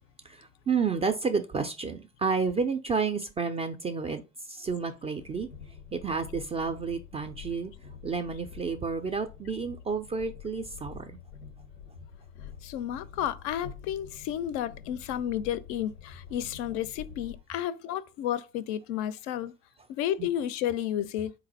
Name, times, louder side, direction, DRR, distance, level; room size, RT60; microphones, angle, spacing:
voice 1, 0.3-4.2 4.5-5.5 5.9-7.7 8.0-11.1 20.2-20.3, right 5 dB, 15° right, 0.3 m, -30 dB
Train, 5.2-17.4, left 8 dB, 90° left, 0.6 m, -47 dB
voice 2, 12.6-19.5 19.9-21.3, left 11 dB, 50° left, 0.4 m, -32 dB
3.8 x 2.6 x 3.9 m
figure-of-eight pair, 65°, 39 cm